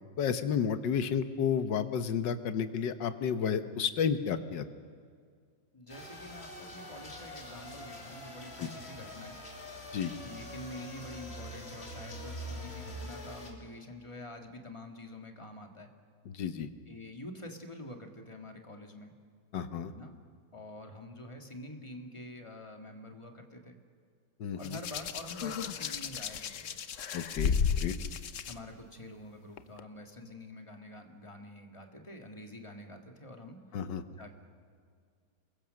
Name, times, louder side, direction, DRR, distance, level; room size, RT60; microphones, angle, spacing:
voice 1, 0.2-4.6 8.6-8.7 9.9-10.1 16.3-16.7 19.5-19.9 24.4-24.8 27.1-27.9 33.7-34.0, left 7 dB, 75° left, 10 dB, 1.7 m, -31 dB
voice 2, 5.7-9.3 10.2-15.9 16.9-19.2 19.9-20.2 20.5-23.8 24.5-26.8 28.5-33.6 34.2-34.3, left 1 dB, 15° left, 4 dB, 1.8 m, -47 dB
sound 1, 5.9-13.5, equal, 35° left, 3.0 m, -44 dB
Hands, 24.6-28.5 29.6-29.8, left 6 dB, 55° left, 1.0 m, -33 dB
27.5 x 22.0 x 6.5 m, 2.1 s
omnidirectional pair, 2.0 m